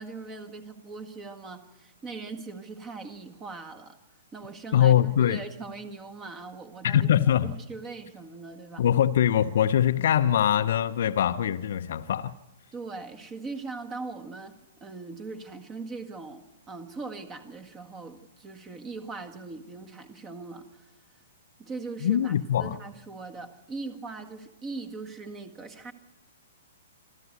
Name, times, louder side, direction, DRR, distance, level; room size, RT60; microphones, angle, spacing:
voice 1, 0.0-4.0 4.3-7.1 7.4-8.9 12.7-20.8 21.6-22.3 22.6-25.9, right 3 dB, 20° right, 1.8 m, -40 dB
voice 2, 4.7-5.4 6.8-7.5 8.8-12.3 22.0-22.8, left 10 dB, 55° left, 0.7 m, -23 dB
27.0 x 12.5 x 8.1 m
figure-of-eight pair, 115°, 0 cm